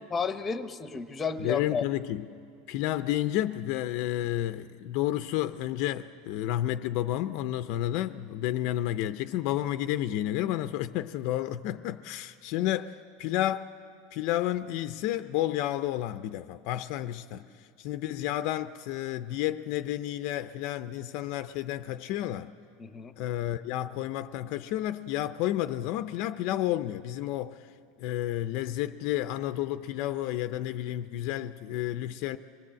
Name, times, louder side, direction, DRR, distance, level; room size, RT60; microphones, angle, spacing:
voice 1, 0.1-1.8 17.3-17.4 22.8-23.1, left 5 dB, 10° left, 0.8 m, -32 dB
voice 2, 1.4-2.3 2.7-13.7 14.1-17.5 17.8-22.5 23.2-27.6 28.0-32.4, left 13 dB, 45° left, 0.5 m, -31 dB
25.5 x 20.0 x 7.6 m
supercardioid pair, 170°, 0 cm